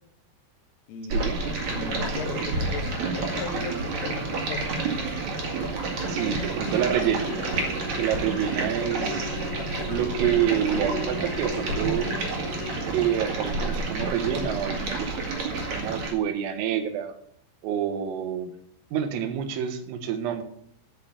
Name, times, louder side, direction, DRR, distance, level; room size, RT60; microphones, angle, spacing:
voice 1, 0.9-4.8, left 5 dB, 75° left, 3.9 m, -36 dB
Stream, 1.1-16.1, right 3 dB, 45° right, 2.9 m, -29 dB
sound 1, 3.5-8.5, right 5 dB, 65° right, 2.0 m, -45 dB
sound 2, 6.0-13.5 13.9-14.1, left 5 dB, 45° left, 3.8 m, -38 dB
voice 2, 6.1-7.3 8.0-9.4 9.9-12.1 12.9-17.2 17.6-18.5 18.9-20.4, right 9 dB, 85° right, 3.9 m, -28 dB
13.0 x 5.8 x 8.5 m
omnidirectional pair, 5.9 m